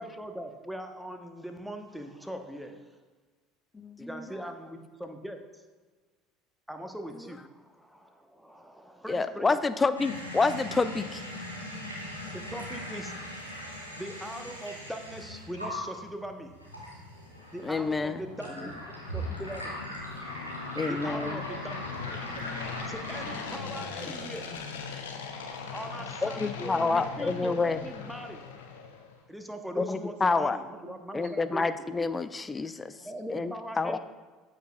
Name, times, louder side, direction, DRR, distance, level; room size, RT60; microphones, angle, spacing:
voice 1, 0.0-2.9 4.0-5.6 6.7-9.6 12.3-13.1 14.0-16.5 17.5-18.7 19.1-21.7 22.9-24.5 25.7-28.4 29.3-31.6 33.0-34.0, equal, ahead, 5 dB, 0.8 m, -41 dB
voice 2, 3.7-4.3 7.2-7.3 9.1-11.2 17.6-18.2 18.6-18.7 20.8-21.4 26.2-27.8 29.8-30.6 31.1-33.0 33.3-34.0, left 3 dB, 20° left, 13 dB, 0.4 m, -28 dB
sound 1, 10.0-23.4, equal, 90° right, 1.3 m, -40 dB
sound 2, 16.9-29.2, left 6 dB, 70° left, 0.7 m, -40 dB
voice 3, 18.0-18.9 20.9-22.8 23.1-23.6 24.0-24.4 25.9-26.8 29.8-31.8 33.0-34.0, right 7 dB, 65° right, 6 dB, 0.8 m, -52 dB
13.5 x 4.9 x 2.2 m, 1.4 s
figure-of-eight pair, 65°, 0 cm